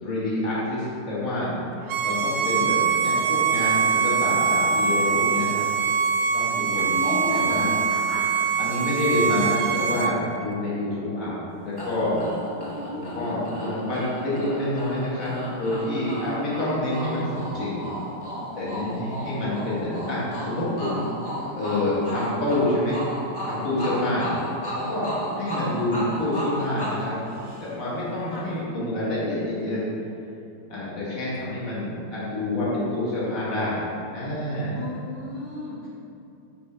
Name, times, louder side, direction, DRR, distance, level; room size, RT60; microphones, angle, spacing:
voice 1, 0.0-1.5 2.0-5.7 6.3-7.7 8.6-12.2 12.9-17.8 18.6-21.0 21.6-23.0 23.4-24.3 24.7-27.2 27.6-29.8 30.7-33.9 34.1-34.7, left 1 dB, 45° left, -8 dB, 2.2 m, -27 dB
Bowed string instrument, 1.9-10.1, right 6 dB, 75° right, 1.1 m, -23 dB
voice 2, 6.8-8.3 12.5-13.2 23.9-24.2 28.3-28.5 34.7-35.9, left 2 dB, 90° left, -7 dB, 2.3 m, -34 dB
sound 1, 11.8-28.0, equal, 15° left, 1.1 m, -34 dB
11.5 x 4.5 x 3.4 m, 2.7 s
omnidirectional pair, 2.1 m